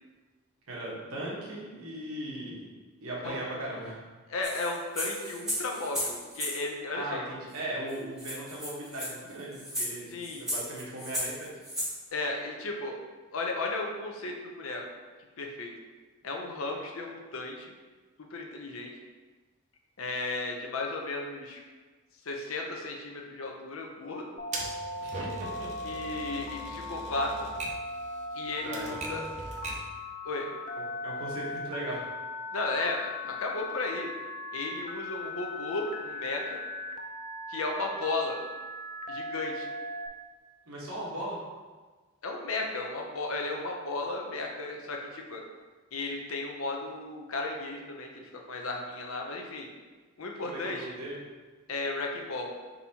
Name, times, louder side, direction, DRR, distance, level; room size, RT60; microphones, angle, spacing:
voice 1, 0.7-2.7 3.0-4.0 6.9-11.5 25.0-25.9 28.6-29.0 31.0-32.0 40.7-41.4 50.4-51.2, right 1 dB, 80° right, -5 dB, 1.2 m, -38 dB
voice 2, 4.3-7.2 10.1-10.5 12.1-13.0 13.3-14.8 15.4-15.7 16.2-17.7 18.3-18.9 20.0-21.6 22.2-24.3 25.8-27.3 28.3-29.2 30.2-30.5 32.5-34.1 34.5-36.6 37.5-38.4 39.1-39.7 42.2-45.4 45.9-49.7 50.2-50.9 51.7-52.5, left 3 dB, 75° left, 1 dB, 0.6 m, -34 dB
sound 1, 4.4-6.6 7.6-7.7 7.9-8.0 8.2-11.9, equal, ahead, 0.9 m, -35 dB
Telephone, 24.4-40.1, left 2 dB, 35° left, 0.3 m, -39 dB
Typewriter, 24.5-30.0, right 2 dB, 30° right, 0.5 m, -40 dB
4.1 x 3.9 x 2.8 m, 1.4 s
head